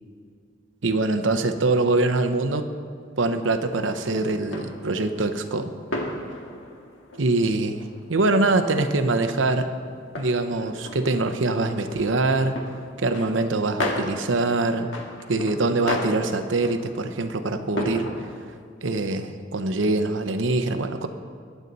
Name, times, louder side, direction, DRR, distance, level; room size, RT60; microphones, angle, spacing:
voice 1, 0.8-2.7 3.2-5.7 7.2-7.8 8.1-9.7 10.2-12.6 13.0-14.9 15.3-18.3 18.8-21.1, right 2 dB, 80° right, 8 dB, 0.8 m, -23 dB
sound 1, 3.7-18.5, left 1 dB, 85° left, 1.7 m, -36 dB
21.5 x 8.1 x 4.1 m, 2.1 s
head